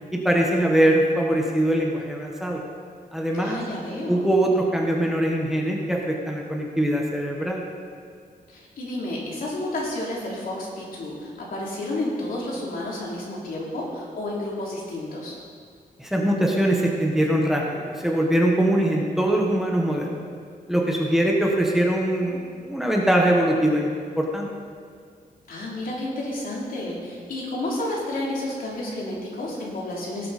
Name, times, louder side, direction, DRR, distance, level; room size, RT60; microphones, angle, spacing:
voice 1, 0.1-2.6 3.1-3.6 4.1-7.6 16.0-20.1 20.7-23.9 24.2-24.5, right 1 dB, ahead, -1 dB, 1.2 m, -22 dB
voice 2, 3.4-4.3 8.5-15.3 25.5-30.3, left 1 dB, 70° left, -4 dB, 3.1 m, -31 dB
18.0 x 7.7 x 4.2 m, 2.1 s
wide cardioid pair, 165°, 15 cm